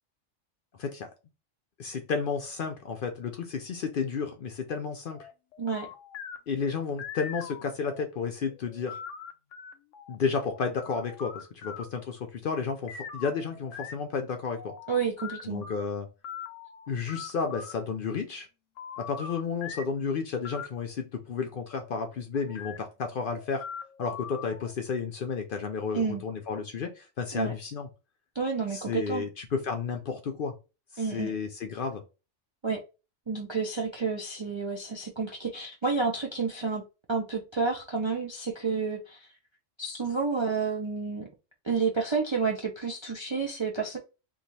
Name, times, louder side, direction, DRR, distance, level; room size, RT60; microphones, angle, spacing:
voice 1, 1.8-5.3 6.5-9.0 10.1-14.7 15.4-16.1 16.9-18.5 19.0-23.6 24.0-27.9 28.7-30.5 30.9-32.0, left 5 dB, 60° left, 0.6 m, -32 dB
sound 1, 5.1-8.0 8.5-12.0 12.9-15.8 16.2-17.7 18.8-20.0 20.4-20.7 21.7-21.9 22.3-22.8 23.2-24.7, left 7 dB, 85° left, 1.0 m, -42 dB
voice 2, 14.9-15.7 25.9-26.2 27.3-27.5 28.3-29.2 31.0-31.3 32.6-32.8 33.3-39.3 39.8-41.3 41.6-44.0, right 4 dB, 45° right, 0.4 m, -30 dB
3.1 x 2.3 x 4.0 m
omnidirectional pair, 1.2 m